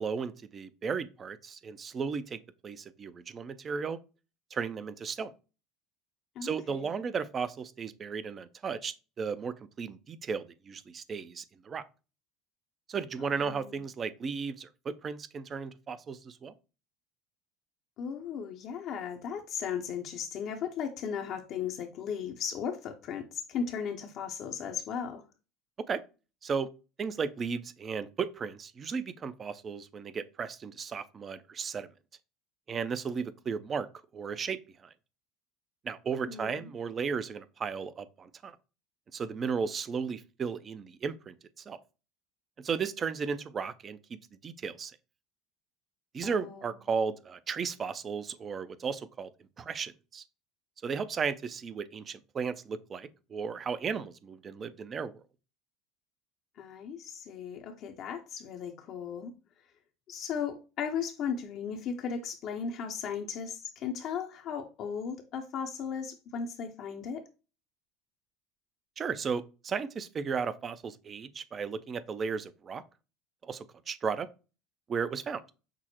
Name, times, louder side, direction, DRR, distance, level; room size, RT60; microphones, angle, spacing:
voice 1, 0.0-2.4 2.6-4.0 4.5-5.3 6.4-11.8 12.9-16.5 25.9-26.0 26.4-26.7 27.0-31.9 32.7-33.9 34.1-34.9 35.8-38.6 39.1-41.8 42.6-44.0 44.4-44.9 46.1-49.3 49.6-50.2 50.8-55.2 69.0-72.8 73.4-74.3 74.9-75.4, right 5 dB, 35° right, 0.4 m, -35 dB
voice 2, 6.4-6.9 13.2-13.8 18.0-25.2 36.3-36.7 46.2-46.7 56.6-59.3 60.1-67.2, left 7 dB, 55° left, 0.6 m, -36 dB
6.0 x 2.1 x 2.9 m
hypercardioid pair, 80°, 0 cm